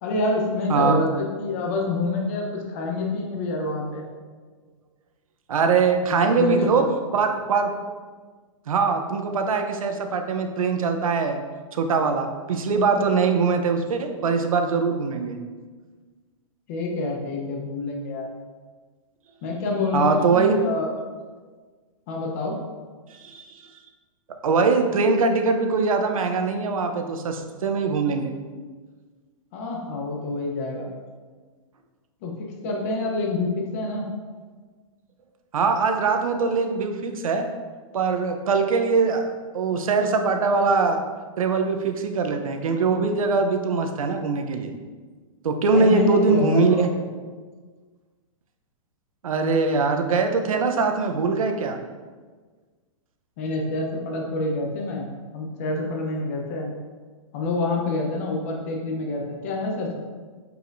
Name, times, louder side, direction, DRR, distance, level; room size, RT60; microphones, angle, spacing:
voice 1, 0.0-4.0 6.1-6.8 16.7-18.3 19.4-20.9 22.1-22.6 29.5-30.8 32.2-32.3 32.6-34.1 45.7-47.0 53.4-55.0 55.3-56.7 57.3-60.0, left 2 dB, 25° left, 0 dB, 0.9 m, -27 dB
voice 2, 0.7-1.0 5.5-6.9 7.1-7.7 8.7-11.4 11.7-15.4 19.9-20.6 23.1-23.4 24.4-28.3 35.5-37.5 37.9-41.0 41.4-44.7 45.4-46.9 49.2-51.8, right 4 dB, 85° right, 6 dB, 0.8 m, -22 dB
7.9 x 4.8 x 2.7 m, 1.4 s
hypercardioid pair, 180°, 17 cm